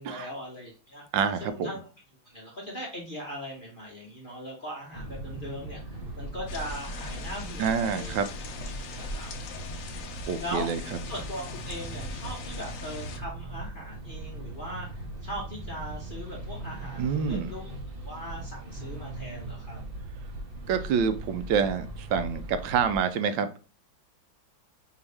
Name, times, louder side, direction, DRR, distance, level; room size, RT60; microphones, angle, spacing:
voice 1, 0.0-1.0 1.4-1.9 2.2-8.2 8.9-9.3 10.4-10.7 11.0-17.7 18.0-19.8, equal, 40° left, -2 dB, 0.8 m, -39 dB
voice 2, 1.1-1.7 7.6-8.3 10.3-10.8 17.0-17.5 20.7-23.7, right 6 dB, 80° right, 11 dB, 1.2 m, -27 dB
sound 1, 4.9-23.0, right 2 dB, 45° right, 0.7 m, -39 dB
sound 2, 6.5-13.2, left 5 dB, 70° left, 0.8 m, -41 dB
4.7 x 2.8 x 3.3 m, 0.35 s
omnidirectional pair, 2.1 m